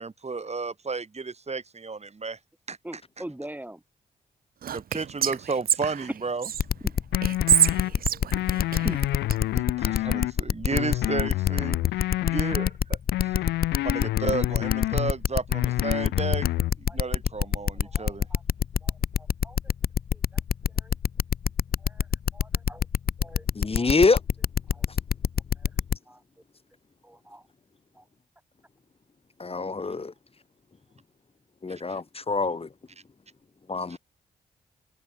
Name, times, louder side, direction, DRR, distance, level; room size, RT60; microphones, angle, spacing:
voice 1, 0.0-2.4 2.7-3.2 4.7-6.5 9.6-11.8 12.2-13.0 13.2-13.5 13.8-16.5 16.8-18.3 31.9-32.0 33.9-34.0, right 4 dB, 40° right, 5.3 m, -33 dB
voice 2, 2.8-3.8 8.3-8.4 8.8-9.0 16.9-17.0 17.8-18.4 18.8-18.9 19.2-19.6 20.8-20.9 21.8-22.0 22.3-22.8 23.2-23.4 23.7-23.9 24.7-24.8 26.1-26.2 27.0-27.4 28.0-28.1, right 1 dB, 10° right, 5.1 m, -41 dB
Whispering, 4.6-6.6 7.2-9.4, right 9 dB, 60° right, 0.6 m, -26 dB
sound 1, 6.6-26.0, left 7 dB, 65° left, 3.1 m, -25 dB
sound 2, 7.1-7.9 8.3-10.3 10.7-12.7 13.1-15.1 15.5-16.7, left 17 dB, 90° left, 1.0 m, -28 dB
voice 3, 23.6-24.2 29.4-30.1 31.6-32.7 33.7-34.0, left 4 dB, 35° left, 1.9 m, -25 dB
supercardioid pair, 50°, 17 cm